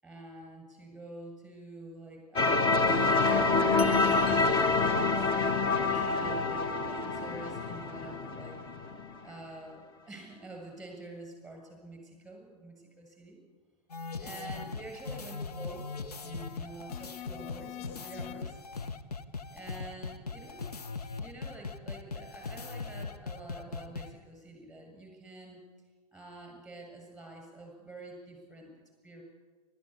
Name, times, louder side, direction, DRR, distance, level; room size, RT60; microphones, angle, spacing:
voice 1, 0.0-3.4 3.8-8.6 8.9-9.0 9.2-13.4 14.2-18.6 19.5-20.8 21.2-25.6 26.1-28.7 29.0-29.2, right 2 dB, ahead, 1 dB, 7.7 m, -47 dB
sound 1, 2.4-9.1, left 3 dB, 25° left, 1.6 m, -27 dB
sound 2, 13.9-24.1, left 4 dB, 70° left, 1.3 m, -39 dB
29.0 x 14.0 x 8.6 m, 1.4 s
figure-of-eight pair, 105°, 20 cm